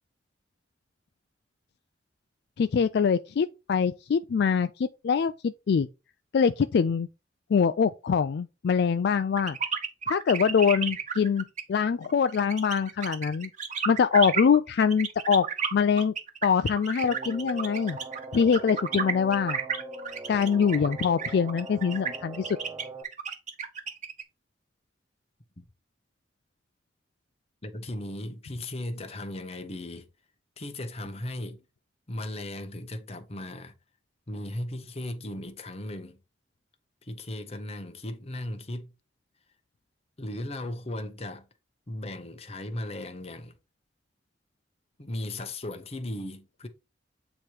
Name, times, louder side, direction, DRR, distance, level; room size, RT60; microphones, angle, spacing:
voice 1, 2.6-5.9 6.3-7.1 7.5-9.6 10.1-13.5 13.9-15.5 15.7-16.1 16.4-18.0 18.3-19.6 20.3-22.6, left 6 dB, 65° left, 0.3 m, -24 dB
sound 1, 9.4-24.2, right 6 dB, 45° right, 1.1 m, -32 dB
sound 2, 17.0-23.0, right 3 dB, 20° right, 0.6 m, -41 dB
voice 2, 27.6-30.1 30.6-31.6 32.1-33.7 34.3-36.2 37.0-38.9 40.2-41.5 41.9-43.6 45.0-46.7, left 1 dB, 35° left, 0.9 m, -36 dB
8.5 x 3.0 x 4.7 m
head